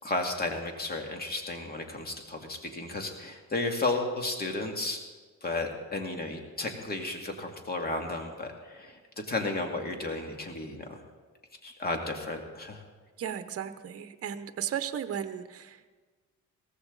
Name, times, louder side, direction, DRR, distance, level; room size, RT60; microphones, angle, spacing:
voice 1, 0.0-5.0 5.4-9.0 9.3-11.0 11.6-12.8, left 2 dB, 30° left, 3 dB, 2.4 m, -33 dB
voice 2, 13.2-15.9, right 9 dB, 50° right, 10 dB, 0.9 m, -35 dB
17.5 x 14.5 x 4.0 m, 1.4 s
cardioid pair, 90°, 30 cm